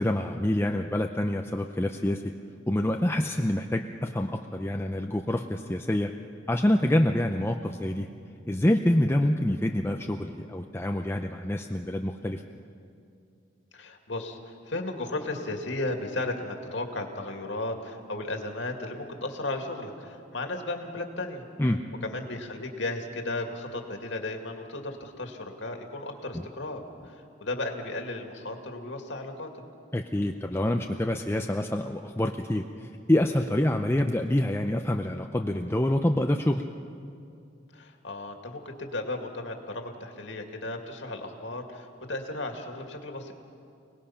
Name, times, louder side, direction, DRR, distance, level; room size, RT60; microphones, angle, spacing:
voice 1, 0.0-2.3 2.7-6.1 6.5-8.1 8.5-12.4 21.6-21.8 26.3-26.4 29.9-36.6, left 1 dB, 15° left, 4 dB, 0.6 m, -26 dB
voice 2, 13.7-21.4 22.0-29.6 37.7-43.3, left 2 dB, 75° left, 3 dB, 2.3 m, -35 dB
29.5 x 19.5 x 5.8 m, 2.4 s
head